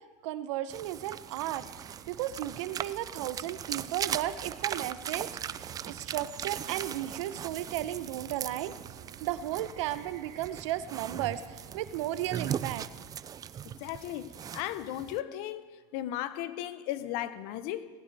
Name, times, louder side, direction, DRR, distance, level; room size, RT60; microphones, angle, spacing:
voice 1, 0.2-1.7 2.1-8.7 9.2-12.9, right 13 dB, 85° right, 0.8 m, -34 dB
sound 1, 0.7-15.2, right 9 dB, 25° right, 0.4 m, -39 dB
sound 2, 1.6-12.8, right 8 dB, 60° right, 1.9 m, -53 dB
voice 2, 13.8-15.6 15.9-17.9, left 13 dB, 65° left, 0.9 m, -36 dB
18.5 x 15.5 x 3.5 m
supercardioid pair, 125°, 15 cm